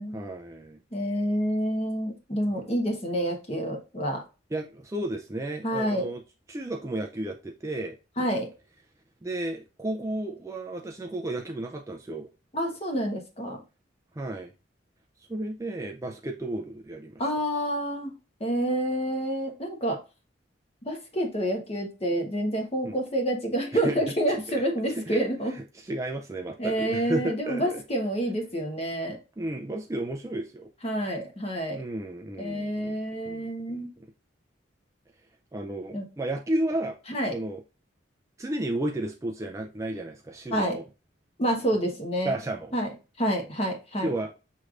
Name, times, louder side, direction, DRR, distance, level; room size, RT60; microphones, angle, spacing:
voice 1, 0.1-0.8 2.5-2.6 4.5-6.2 6.5-8.0 9.2-12.3 14.2-14.5 15.3-17.2 22.8-22.9 23.7-24.0 24.3-24.6 24.9-27.8 29.4-30.7 31.7-34.1 35.5-37.0 37.3-37.6 38.4-40.8 42.2-42.7 44.0-44.3, right 1 dB, 15° right, 2 dB, 0.4 m, -33 dB
voice 2, 0.9-4.2 5.6-6.1 8.2-8.5 12.5-13.6 17.2-18.1 18.4-20.0 20.8-25.5 26.6-29.2 30.8-31.8 32.4-33.9 35.9-36.1 37.1-37.3 40.5-40.8 41.4-42.3 42.7-42.9 43.2-44.1, right 1 dB, 30° left, 2 dB, 1.0 m, -28 dB
6.2 x 3.2 x 2.4 m, 0.30 s
head